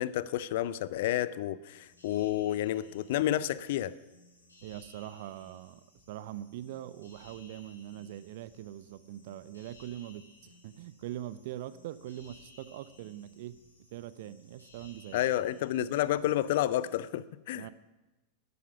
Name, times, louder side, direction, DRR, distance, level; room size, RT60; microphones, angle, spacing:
voice 1, 0.0-3.9 15.1-17.7, left 13 dB, 55° left, 18 dB, 0.5 m, -30 dB
sound 1, 1.7-17.0, left 2 dB, 80° left, 4.7 m, -59 dB
voice 2, 4.6-13.6 13.9-15.2 17.5-17.7, right 13 dB, 50° right, 16 dB, 0.6 m, -42 dB
11.5 x 9.5 x 7.0 m, 1.1 s
figure-of-eight pair, 90°, 0 cm